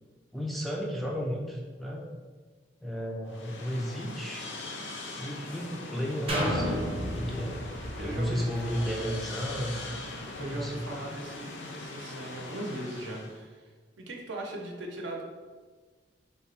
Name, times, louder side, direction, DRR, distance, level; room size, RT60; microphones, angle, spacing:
voice 1, 0.3-2.1 2.8-4.5 5.2-7.6 8.0-9.8 10.5-10.8, equal, ahead, -2 dB, 0.3 m, -33 dB
sound 1, 3.3-13.4, left 2 dB, 70° left, 0.5 m, -41 dB
sound 2, 6.3-10.1 10.6-10.7, equal, 30° right, 0.7 m, -33 dB
voice 2, 8.0-8.4 10.4-13.7 14.0-15.2, right 1 dB, 70° right, 0 dB, 0.6 m, -38 dB
3.3 x 2.0 x 4.0 m, 1.4 s
head